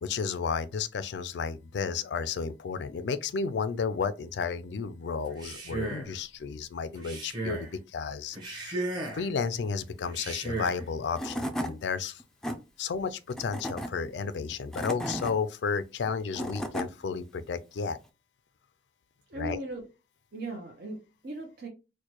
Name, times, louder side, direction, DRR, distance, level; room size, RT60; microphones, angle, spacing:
voice 1, 0.0-8.9 9.1-12.2 12.8-18.0 19.3-19.6, left 5 dB, 75° left, 0.4 m, -32 dB
Male speech man speaking, 5.2-6.2 6.9-7.7 8.3-9.3 10.0-10.8, right 2 dB, 25° right, 0.9 m, -35 dB
Tools / Wood, 10.8-10.9 11.2-11.7 12.2-12.6 13.3-13.9 14.5-15.3 16.1-16.9, equal, 5° left, 0.4 m, -33 dB
voice 2, 19.3-19.8 20.3-21.7, right 2 dB, 60° right, 0.7 m, -38 dB
4.4 x 2.2 x 2.9 m
head